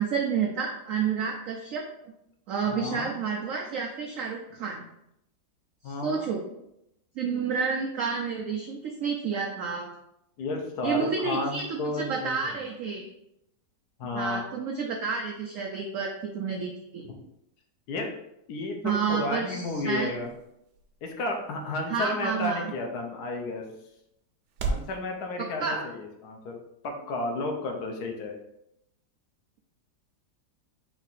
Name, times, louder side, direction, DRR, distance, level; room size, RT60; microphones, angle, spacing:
voice 1, 0.0-1.8 2.5-4.9 5.9-6.4 7.2-9.9 10.8-13.1 14.1-17.1 18.8-20.1 21.9-22.7 25.4-25.8, right 6 dB, 85° right, 1 dB, 0.7 m, -30 dB
voice 2, 2.7-3.1 5.8-6.3 10.4-12.6 14.0-14.5 17.1-17.2 17.9-18.1 18.5-20.3 21.0-23.6 24.7-28.4, left 2 dB, 70° left, 2 dB, 1.1 m, -32 dB
sound 1, 18.7-25.0, right 3 dB, 70° right, 1.2 m, -40 dB
4.6 x 2.5 x 4.0 m, 0.82 s
omnidirectional pair, 2.0 m